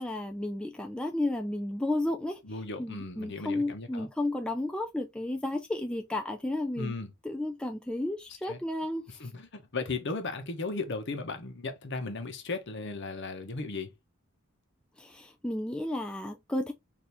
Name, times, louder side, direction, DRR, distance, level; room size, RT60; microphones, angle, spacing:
voice 1, 0.0-2.4 2.8-7.0 7.2-9.1 15.0-16.7, left 1 dB, 5° left, 0.3 m, -32 dB
voice 2, 2.4-4.1 6.8-7.1 8.5-8.6 9.2-13.9, left 3 dB, 55° left, 0.9 m, -36 dB
4.3 x 2.7 x 3.3 m
head